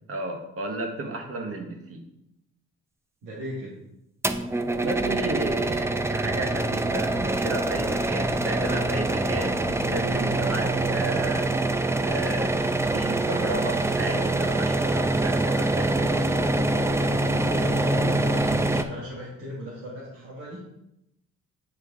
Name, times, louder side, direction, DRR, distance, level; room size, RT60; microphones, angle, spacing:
voice 1, 0.1-2.0 4.7-11.5 12.0-12.7 12.9-16.1, right 2 dB, 50° right, 3 dB, 1.4 m, -33 dB
voice 2, 3.2-3.8 17.1-20.7, equal, 85° right, -6 dB, 1.6 m, -37 dB
sound 1, 4.2-18.8, right 2 dB, 10° right, 0.4 m, -25 dB
9.0 x 3.3 x 3.6 m, 0.85 s
cardioid pair, 90°, 30 cm